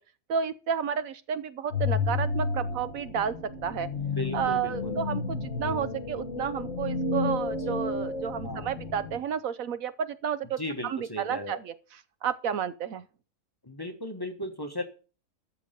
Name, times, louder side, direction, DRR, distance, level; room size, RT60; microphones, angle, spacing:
voice 1, 0.3-3.3 3.6-3.9 4.3-11.7 12.2-13.0, right 8 dB, 70° right, 1.1 m, -31 dB
sound 1, 1.7-9.2, left 4 dB, 55° left, 1.7 m, -31 dB
voice 2, 4.1-5.0 8.4-8.7 10.6-11.6 13.6-14.8, left 1 dB, 15° left, 1.3 m, -36 dB
13.5 x 5.6 x 6.8 m
omnidirectional pair, 1.5 m